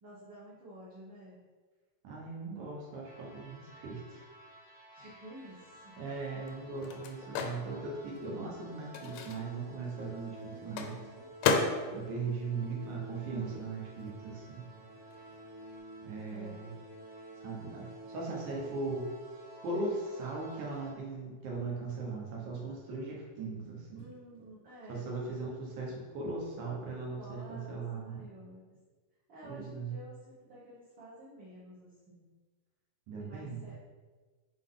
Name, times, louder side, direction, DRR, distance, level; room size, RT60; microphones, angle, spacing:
voice 1, 0.0-1.4 4.9-6.1 10.4-11.3 16.3-16.6 23.9-25.1 27.2-28.8 29.3-32.3 33.1-33.7, right 1 dB, 50° right, -9 dB, 1.6 m, -51 dB
voice 2, 2.0-4.2 5.0-5.1 6.0-11.0 11.9-14.6 16.0-16.7 17.4-19.1 19.6-24.0 24.9-28.3 29.5-30.0 33.1-33.7, right 3 dB, 80° right, -2 dB, 2.6 m, -39 dB
sound 1, 3.0-20.9, right 1 dB, 35° right, 1.5 m, -51 dB
Microwave oven, 5.5-13.6 13.9-15.8, left 5 dB, 80° left, 2.0 m, -37 dB
6.5 x 4.0 x 3.8 m, 1.3 s
omnidirectional pair, 3.4 m